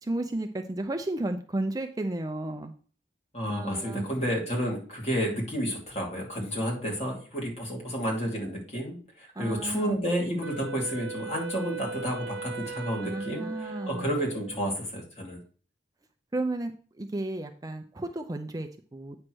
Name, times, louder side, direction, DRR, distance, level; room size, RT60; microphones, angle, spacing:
voice 1, 0.0-2.7 3.5-4.0 9.3-10.0 13.0-14.1 16.3-19.2, right 2 dB, 20° right, 5 dB, 0.5 m, -33 dB
voice 2, 3.3-15.4, equal, 40° left, -1 dB, 2.6 m, -31 dB
Wind instrument woodwind instrument, 10.4-14.7, right 4 dB, 75° right, 0.5 m, -39 dB
8.7 x 3.2 x 6.2 m, 0.40 s
head